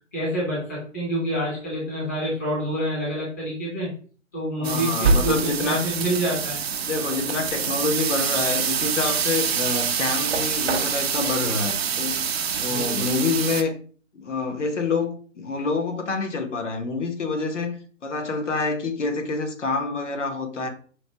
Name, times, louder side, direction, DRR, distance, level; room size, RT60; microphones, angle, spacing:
voice 1, 0.1-3.9 4.3-6.6 12.7-13.1, equal, 15° left, 0.5 m, -27 dB
voice 2, 4.6-5.9 6.8-12.3 12.6-13.8 14.1-17.8 18.0-20.7, left 4 dB, 65° left, 1.1 m, -27 dB
sound 1, 4.6-13.6, right 6 dB, 55° right, 0.5 m, -25 dB
5.1 x 2.1 x 2.8 m
figure-of-eight pair, 145°, 38 cm